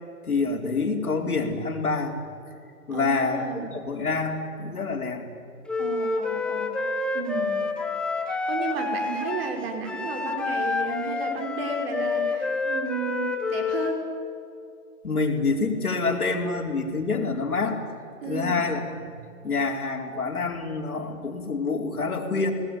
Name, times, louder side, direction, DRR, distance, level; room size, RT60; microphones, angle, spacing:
voice 1, 0.3-2.2 2.9-5.3 15.0-17.8 18.3-19.1 19.4-22.5, left 4 dB, 80° left, 1 dB, 5.0 m, -27 dB
voice 2, 2.9-3.7 5.8-6.7 7.1-7.7 8.3-14.0 18.2-18.6, right 5 dB, 40° right, 4 dB, 5.5 m, -33 dB
Wind instrument woodwind instrument, 5.7-14.0, left 4 dB, ahead, 0.9 m, -28 dB
29.5 x 19.5 x 9.4 m, 2.5 s
figure-of-eight pair, 140°, 44 cm